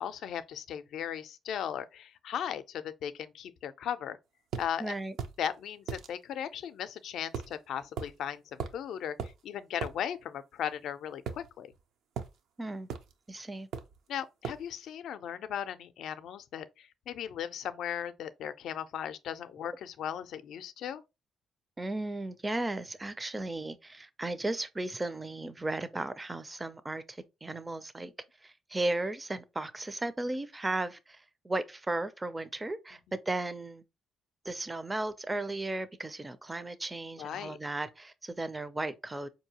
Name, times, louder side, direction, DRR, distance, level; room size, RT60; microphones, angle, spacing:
voice 1, 0.0-4.2 4.6-4.9 5.4-11.7 14.1-21.0 37.2-37.6, left 9 dB, 75° left, 0.4 m, -37 dB
sound 1, 4.5-4.7 5.2-5.4 5.9-6.1 7.3-7.6 8.0-8.1 8.6-8.8 9.2-9.4 9.8-10.0 11.3-11.8 12.2-12.4 12.9-13.1 13.7-14.0 14.4-14.7, right 7 dB, 80° right, 0.5 m, -37 dB
voice 2, 4.8-5.2 12.6-12.9 13.3-13.7 21.8-28.1 28.4-33.8 34.4-39.3, right 2 dB, 20° right, 0.4 m, -35 dB
4.5 x 2.7 x 2.8 m
cardioid pair, 90°, 0 cm